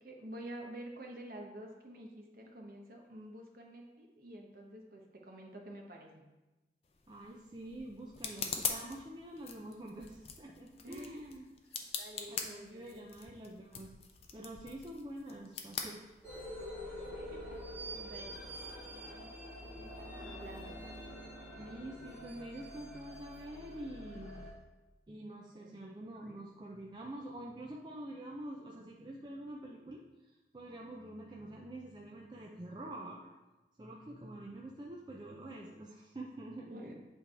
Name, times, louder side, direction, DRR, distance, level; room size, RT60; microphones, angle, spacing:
voice 1, 0.0-6.3 10.8-11.2 12.0-13.0 17.1-17.6 17.9-18.4 18.9-20.8 25.5-25.8 26.1-26.4 36.7-36.9, right 1 dB, 50° right, 1 dB, 1.0 m, -49 dB
sound 1, 6.8-16.7, left 6 dB, 35° left, 0.5 m, -43 dB
voice 2, 7.1-11.4 12.3-13.9 14.3-16.0 21.6-24.4 25.1-30.0 30.5-33.3 33.8-36.9, right 1 dB, 25° right, -2 dB, 0.5 m, -46 dB
sound 2, 16.2-24.5, equal, 10° right, 2.2 m, -46 dB
8.2 x 3.5 x 4.3 m, 1.1 s
head